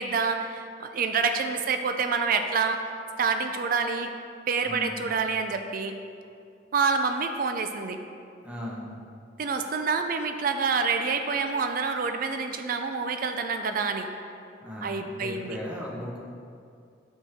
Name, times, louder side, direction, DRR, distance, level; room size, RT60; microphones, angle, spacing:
voice 1, 0.0-2.8 3.2-4.1 4.5-6.0 6.7-8.0 9.4-14.1 14.8-15.6, right 5 dB, 50° right, 6 dB, 0.4 m, -27 dB
voice 2, 4.6-5.0 8.4-8.9 14.6-16.2, left 1 dB, 10° right, -4 dB, 1.0 m, -37 dB
7.3 x 6.1 x 3.5 m, 2.4 s
head